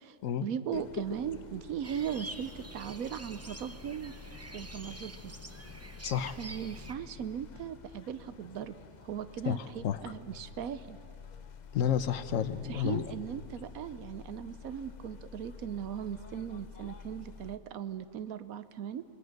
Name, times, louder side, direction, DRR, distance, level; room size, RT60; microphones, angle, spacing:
voice 1, 0.4-4.1 4.5-5.3 6.4-8.8 9.0-11.0 12.7-19.0, right 9 dB, 90° right, 13 dB, 1.2 m, -38 dB
sound 1, 0.7-17.6, left 6 dB, 45° left, 0.6 m, -50 dB
sound 2, 1.8-6.9, right 2 dB, 15° right, 0.5 m, -47 dB
voice 2, 6.0-6.4 9.5-10.0 11.7-13.0, left 9 dB, 70° left, 13 dB, 1.1 m, -31 dB
26.5 x 20.0 x 6.5 m, 2.5 s
omnidirectional pair, 1.5 m